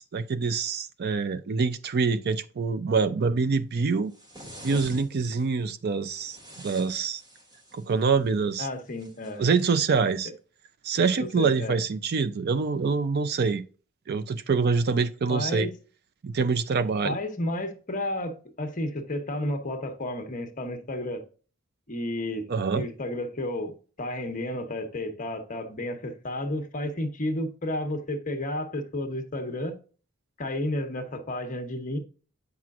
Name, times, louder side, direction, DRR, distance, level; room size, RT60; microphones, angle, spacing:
voice 1, 0.0-4.1 4.6-6.4 6.6-7.2 7.7-8.7 9.4-10.3 10.8-13.6 14.1-15.7 16.2-17.2 22.5-22.9, right 4 dB, 45° right, 0.4 m, -25 dB
sound 1, 4.1-5.4 6.1-7.9 9.0-9.7, equal, 20° right, 1.1 m, -44 dB
voice 2, 8.6-9.4 11.2-11.8 15.3-15.8 17.0-21.2 21.9-22.5 22.7-29.8 30.4-32.0, left 1 dB, 35° left, 1.1 m, -32 dB
8.4 x 5.9 x 2.4 m
head